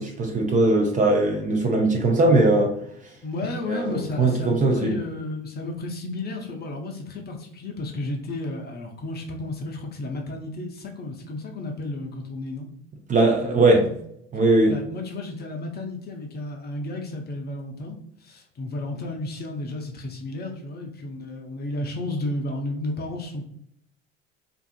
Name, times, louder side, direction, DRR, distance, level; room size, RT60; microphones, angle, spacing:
voice 1, 0.0-2.7 3.7-5.0 13.1-13.8 14.3-14.8, right 2 dB, 25° right, 1 dB, 0.5 m, -20 dB
voice 2, 3.2-12.7 13.2-13.9 14.7-23.4, left 2 dB, 30° left, 1 dB, 0.6 m, -33 dB
2.6 x 2.4 x 2.4 m, 0.70 s
figure-of-eight pair, 60°, 34 cm